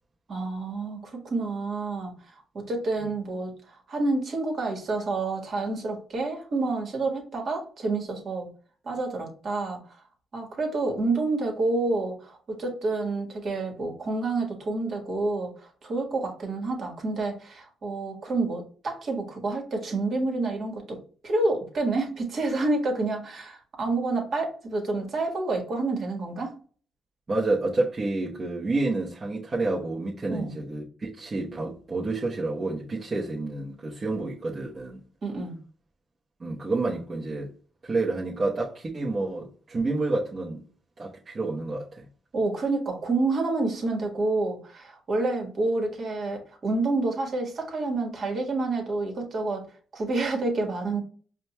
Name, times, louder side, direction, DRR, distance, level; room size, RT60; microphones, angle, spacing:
voice 1, 0.3-2.1 2.5-8.5 8.8-9.8 10.3-21.0 21.2-26.5 30.3-30.5 35.2-35.6 42.3-49.6 49.9-51.0, right 3 dB, 50° right, 1.5 m, -28 dB
voice 2, 27.3-35.0 36.4-37.5 37.8-40.6 41.0-42.1, right 2 dB, 35° right, 1.0 m, -29 dB
5.0 x 2.3 x 3.0 m
cardioid pair, 90°, 0 cm